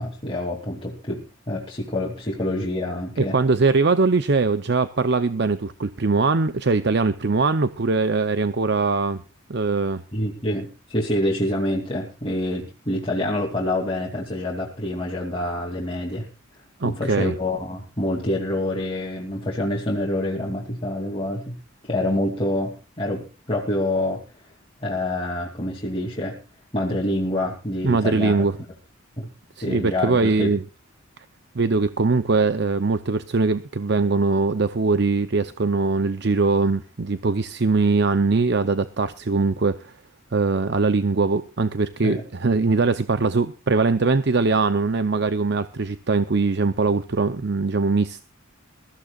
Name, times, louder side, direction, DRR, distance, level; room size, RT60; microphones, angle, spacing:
voice 1, 0.0-3.4 10.1-16.3 16.8-21.6 21.8-24.2 24.8-26.4 26.7-28.4 29.2-29.3 29.6-30.5 42.0-42.2, left 1 dB, 25° left, -2 dB, 2.7 m, -26 dB
voice 2, 3.2-9.2 9.5-10.0 16.8-17.3 27.8-28.6 29.6-30.6 31.5-39.9 40.3-48.2, right 3 dB, 55° right, 11 dB, 0.7 m, -21 dB
22.0 x 14.5 x 2.4 m, 0.30 s
head